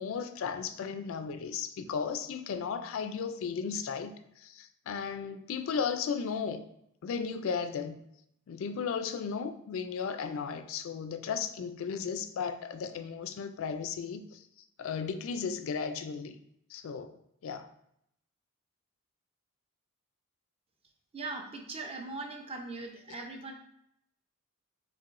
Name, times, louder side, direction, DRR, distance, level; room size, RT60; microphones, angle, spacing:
voice 1, 0.0-6.6 7.0-8.0 8.5-14.4 14.8-16.4 16.7-17.2 17.4-17.7, left 6 dB, 65° left, 0.3 m, -35 dB
voice 2, 21.1-23.5, right 3 dB, 25° right, 0.4 m, -40 dB
4.6 x 3.4 x 2.5 m
head